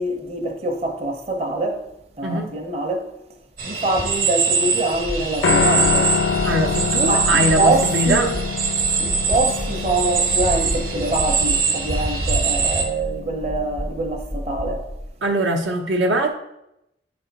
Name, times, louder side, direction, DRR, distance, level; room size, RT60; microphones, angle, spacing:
voice 1, 0.0-1.8 2.2-3.1 3.6-6.1 7.1-8.4 9.0-14.8, right 2 dB, 35° right, 0.7 m, -24 dB
sound 1, 3.6-12.8, right 5 dB, 50° right, 1.0 m, -23 dB
sound 2, 4.9-15.1, equal, 5° left, 0.4 m, -32 dB
Piano, 5.4-13.7, left 6 dB, 85° left, 0.4 m, -26 dB
voice 2, 6.4-8.4 15.2-16.3, right 1 dB, 85° right, 0.8 m, -21 dB
9.6 x 3.5 x 4.0 m
head